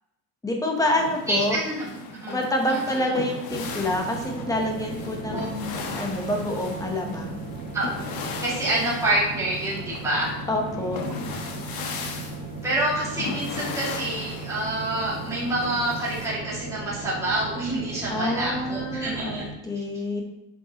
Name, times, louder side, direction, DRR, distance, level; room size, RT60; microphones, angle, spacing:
voice 1, 0.4-1.6 2.3-7.4 10.5-11.0 18.1-20.2, left 1 dB, 10° left, 1 dB, 0.8 m, -27 dB
sound 1, 0.8-16.3, left 4 dB, 70° left, 1.1 m, -38 dB
voice 2, 1.3-2.4 2.7-2.8 5.3-5.4 7.7-7.8 8.4-10.3 12.6-19.5, right 1 dB, 10° right, -8 dB, 2.0 m, -27 dB
sound 2, 3.5-19.5, right 3 dB, 60° right, 0.7 m, -37 dB
sound 3, 9.9-12.9, right 1 dB, 80° right, 2.4 m, -43 dB
8.3 x 5.2 x 2.9 m, 0.91 s
cardioid pair, 175°, 38 cm